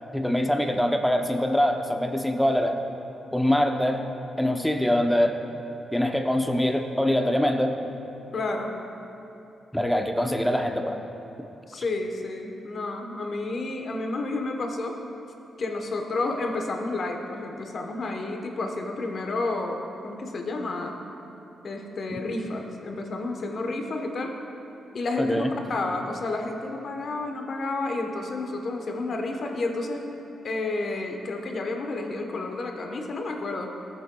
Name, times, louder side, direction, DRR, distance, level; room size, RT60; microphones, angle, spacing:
voice 1, 0.1-2.8 3.3-4.1 4.4-5.4 5.9-7.8 9.7-11.0 25.2-25.5, left 1 dB, 5° left, 4 dB, 0.7 m, -24 dB
voice 2, 8.3-8.7 11.7-15.0 15.6-21.0 21.6-24.3 24.9-30.1 30.4-33.7, left 2 dB, 55° left, 3 dB, 1.0 m, -30 dB
15.5 x 7.9 x 2.3 m, 2.9 s
cardioid pair, 100°, 0 cm